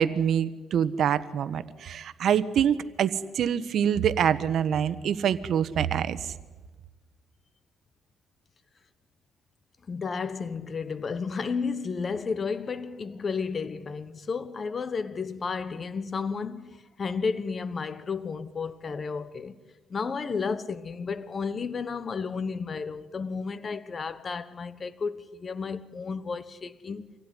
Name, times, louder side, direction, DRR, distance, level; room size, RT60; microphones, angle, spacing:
voice 1, 0.0-6.3, right 8 dB, 65° right, 1.2 m, -25 dB
voice 2, 9.9-19.6 19.9-27.1, left 5 dB, 35° left, 1.1 m, -32 dB
26.0 x 17.0 x 10.0 m
cardioid pair, 120°, 0 cm